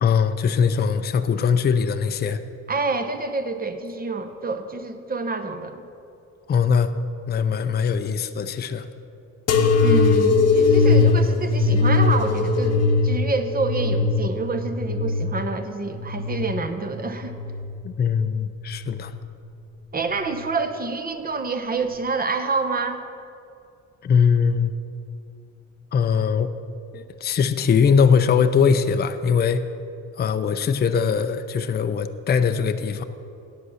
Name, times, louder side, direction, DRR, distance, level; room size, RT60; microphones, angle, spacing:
voice 1, 0.0-2.4 6.5-6.9 7.3-8.9 17.8-19.1 24.0-24.7 25.9-26.5 26.9-29.6 30.2-33.0, left 6 dB, 35° left, 9 dB, 0.5 m, -21 dB
voice 2, 2.7-5.8 9.8-17.3 19.9-23.0, right 3 dB, 30° right, 8 dB, 0.8 m, -27 dB
sound 1, 9.5-16.7 17.2-18.0 18.7-19.3 20.2-20.4, left 3 dB, 55° left, 0.9 m, -20 dB
8.6 x 8.2 x 6.3 m, 2.6 s
cardioid pair, 90°, 30 cm